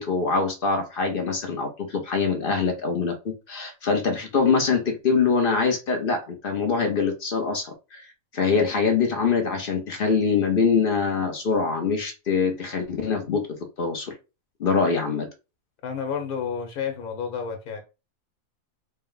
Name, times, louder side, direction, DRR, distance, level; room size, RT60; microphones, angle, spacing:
voice 1, 0.0-8.0 8.3-13.4 13.8-14.1 14.6-15.3, left 5 dB, 45° left, 0.9 m, -24 dB
voice 2, 15.8-17.8, left 6 dB, 85° left, 1.5 m, -30 dB
4.3 x 2.1 x 3.8 m
omnidirectional pair, 1.5 m